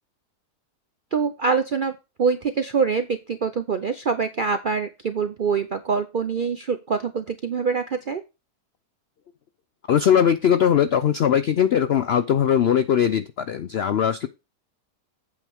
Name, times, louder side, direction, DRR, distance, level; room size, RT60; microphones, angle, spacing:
voice 1, 1.1-1.9 2.2-8.2, right 5 dB, 60° right, 9 dB, 0.5 m, -24 dB
voice 2, 9.9-14.3, left 8 dB, 70° left, 12 dB, 0.6 m, -20 dB
8.6 x 8.0 x 3.5 m, 0.26 s
omnidirectional pair, 1.7 m